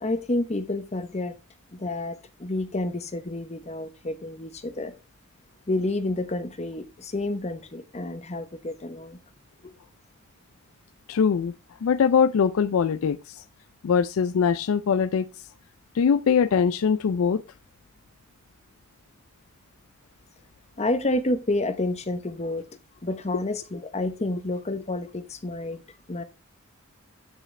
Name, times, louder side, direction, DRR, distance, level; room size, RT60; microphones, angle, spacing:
voice 1, 0.0-1.4 1.7-4.9 5.7-9.2 20.8-22.7 23.0-25.8 26.1-26.2, left 2 dB, 30° left, 0.7 m, -29 dB
voice 2, 11.1-11.5 11.8-13.4 13.8-15.3 15.9-17.4, left 6 dB, 75° left, 0.4 m, -22 dB
10.0 x 4.8 x 3.2 m
head